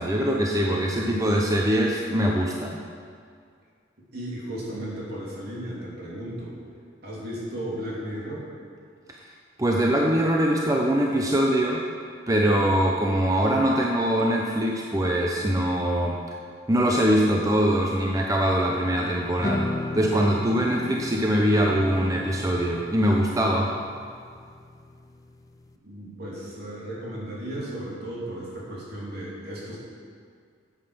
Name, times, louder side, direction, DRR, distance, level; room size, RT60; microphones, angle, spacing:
voice 1, 0.0-2.8 9.6-11.8 12.3-16.2 16.7-23.7, equal, 20° right, -1 dB, 0.7 m, -23 dB
voice 2, 4.1-6.6 7.0-8.4 25.8-29.8, right 1 dB, 60° right, -5 dB, 3.1 m, -35 dB
sound 1, 19.4-25.7, left 2 dB, 20° left, 0.5 m, -35 dB
9.5 x 8.3 x 6.8 m, 2.2 s
head